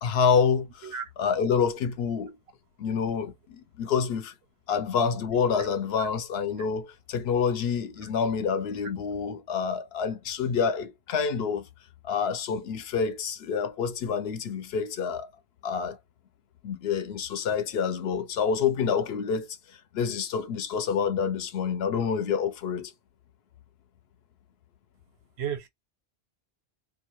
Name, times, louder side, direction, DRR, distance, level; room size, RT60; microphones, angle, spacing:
voice 1, 0.0-0.9 1.2-2.4 2.8-4.3 4.7-11.7 12.0-15.3 15.6-16.0 16.6-19.5 19.9-22.9, left 6 dB, 80° left, 0.8 m, -27 dB
voice 2, 25.4-25.7, right 8 dB, 90° right, 0.9 m, -34 dB
2.4 x 2.3 x 2.9 m
omnidirectional pair, 1.0 m